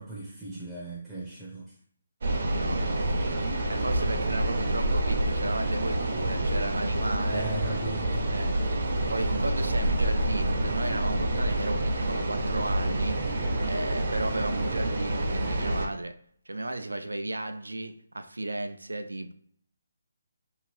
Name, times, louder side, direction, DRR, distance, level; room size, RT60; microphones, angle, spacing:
voice 1, 0.0-1.8 7.3-8.1, right 2 dB, 5° right, -6 dB, 0.6 m, -38 dB
sound 1, 2.2-15.9, right 1 dB, 55° right, 0.6 m, -28 dB
voice 2, 2.4-3.3 3.7-7.5 8.3-8.6 9.1-13.2 13.6-16.2 16.5-19.3, right 2 dB, 85° right, 8 dB, 0.4 m, -34 dB
2.7 x 2.4 x 3.2 m, 0.63 s
figure-of-eight pair, 150°, 0 cm